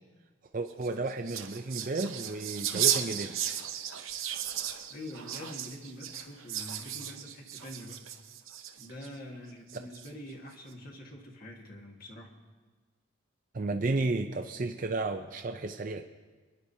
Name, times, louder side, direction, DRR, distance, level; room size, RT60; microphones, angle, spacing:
voice 1, 0.5-3.4 13.5-16.0, right 2 dB, 40° right, 5 dB, 0.5 m, -32 dB
sound 1, 0.7-9.1 9.7-10.3, right 10 dB, 85° right, 0.8 m, -35 dB
voice 2, 4.9-8.1 8.8-12.3, left 1 dB, 45° left, 0 dB, 1.6 m, -45 dB
28.5 x 10.5 x 2.8 m, 1.3 s
head